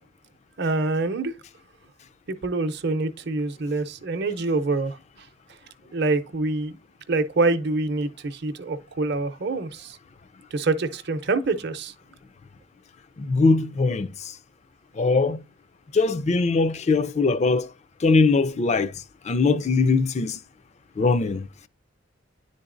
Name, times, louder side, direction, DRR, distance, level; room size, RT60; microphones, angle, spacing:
voice 1, 0.6-1.3 2.3-5.0 5.9-6.8 7.1-10.0 10.5-11.9, right 3 dB, 55° right, 0.7 m, -25 dB
voice 2, 13.2-14.3 15.0-15.4 15.9-17.7 18.0-18.9 19.3-20.4 21.0-21.5, left 3 dB, 35° left, 0.4 m, -21 dB
10.5 x 3.9 x 2.5 m
head